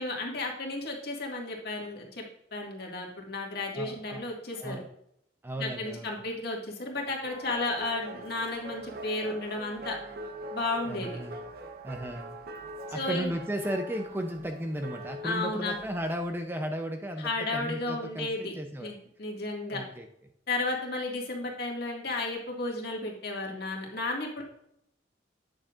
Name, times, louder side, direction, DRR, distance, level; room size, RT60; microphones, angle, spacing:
voice 1, 0.0-2.2 2.5-4.8 5.6-10.0 10.5-11.2 12.9-13.3 15.2-15.8 17.2-18.6 18.8-19.8 20.5-24.4, left 2 dB, 60° left, 0 dB, 1.9 m, -33 dB
voice 2, 3.7-4.2 4.6-4.8 5.4-6.1 10.9-11.4 11.8-12.4 12.9-18.9 19.7-20.1, equal, 10° right, 5 dB, 0.5 m, -35 dB
sound 1, 7.2-16.4, right 1 dB, 55° right, 0.9 m, -43 dB
8.8 x 7.2 x 2.5 m, 0.74 s
head